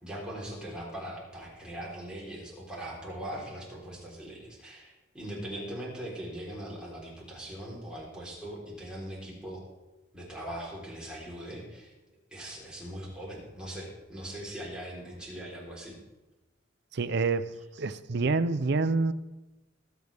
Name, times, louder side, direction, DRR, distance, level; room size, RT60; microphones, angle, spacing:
voice 1, 0.0-9.7 10.1-11.9 12.3-16.0, right 1 dB, 5° right, -5 dB, 3.8 m, -40 dB
voice 2, 16.9-17.5 17.8-19.1, right 3 dB, 60° right, 13 dB, 0.6 m, -27 dB
21.5 x 8.0 x 3.5 m, 1.1 s
head